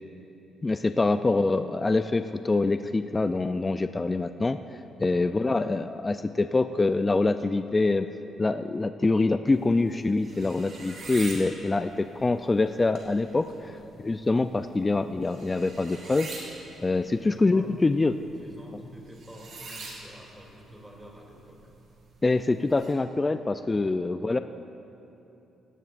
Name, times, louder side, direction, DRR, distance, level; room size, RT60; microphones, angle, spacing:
voice 1, 0.6-4.6 5.0-8.1 8.4-13.7 14.0-16.3 16.8-18.1 22.2-24.4, left 3 dB, 25° left, 9 dB, 0.4 m, -25 dB
voice 2, 5.0-5.5 13.6-13.8 17.0-17.8 18.3-21.7 23.5-24.0, equal, 5° right, -1 dB, 2.7 m, -49 dB
sound 1, 9.5-22.9, right 3 dB, 65° right, 3.6 m, -46 dB
17.5 x 17.5 x 2.5 m, 2.9 s
cardioid pair, 90°, 0 cm